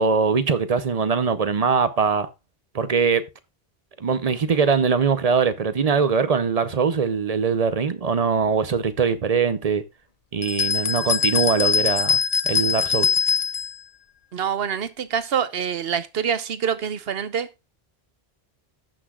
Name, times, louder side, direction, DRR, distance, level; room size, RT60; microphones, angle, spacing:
voice 1, 0.0-2.3 2.7-3.2 4.0-9.8 10.3-12.2 12.4-13.1, right 5 dB, 40° right, 0.7 m, -22 dB
sound 1, 10.4-13.7, left 6 dB, 45° left, 0.6 m, -22 dB
voice 2, 14.3-17.5, right 7 dB, 70° right, 1.0 m, -26 dB
17.0 x 6.1 x 2.3 m
omnidirectional pair, 1.1 m